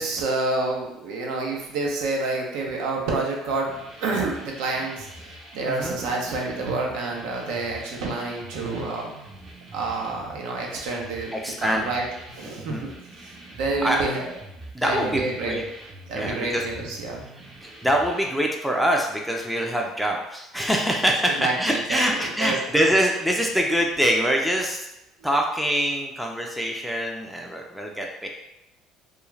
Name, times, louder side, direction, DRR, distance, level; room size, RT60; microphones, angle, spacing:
voice 1, 0.0-9.1 9.7-11.3 11.6-12.9 13.2-14.3 14.8-15.6 16.1-17.3 21.4-22.6, right 3 dB, 80° right, 0 dB, 0.6 m, -28 dB
sound 1, 3.5-18.3, right 2 dB, 40° right, 0.7 m, -44 dB
voice 2, 5.6-6.0 11.3-11.9 12.4-12.9 13.8-14.0 14.7-15.6 16.1-16.6 17.3-24.9 25.2-28.3, equal, ahead, 0 dB, 0.4 m, -24 dB
2.4 x 2.3 x 3.1 m, 0.86 s
supercardioid pair, 90°, 0 cm